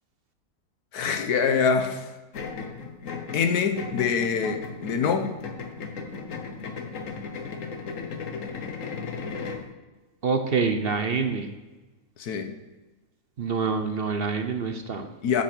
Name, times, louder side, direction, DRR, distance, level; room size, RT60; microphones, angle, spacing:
voice 1, 0.9-2.1 3.3-5.3 12.2-12.5 15.2-15.4, left 6 dB, 90° left, 7 dB, 1.5 m, -24 dB
sound 1, 2.3-9.7, left 5 dB, 60° left, 1.4 m, -36 dB
voice 2, 10.2-11.5 13.4-15.1, right 5 dB, 50° right, 7 dB, 0.8 m, -26 dB
8.8 x 7.7 x 6.1 m, 1.2 s
omnidirectional pair, 1.6 m